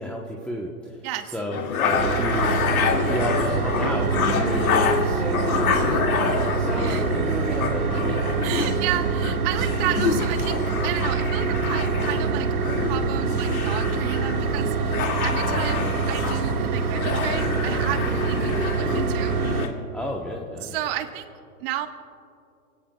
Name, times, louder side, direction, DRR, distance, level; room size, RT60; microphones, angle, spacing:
voice 1, 0.0-1.0 1.3-2.6 3.0-8.0 8.3-8.4 15.4-15.7 19.9-20.8, left 1 dB, 5° left, -2 dB, 0.9 m, -32 dB
voice 2, 1.0-1.3 6.8-7.0 8.4-10.6 10.8-12.5 12.9-14.9 15.2-19.4 20.6-21.3 21.6-21.9, right 12 dB, 40° right, 7 dB, 1.3 m, -32 dB
sound 1, 1.5-19.7, left 6 dB, 75° left, 2.2 m, -28 dB
sound 2, 1.9-19.7, right 5 dB, 80° right, 1.7 m, -25 dB
27.5 x 17.5 x 2.3 m, 2.6 s
hypercardioid pair, 130°, 43 cm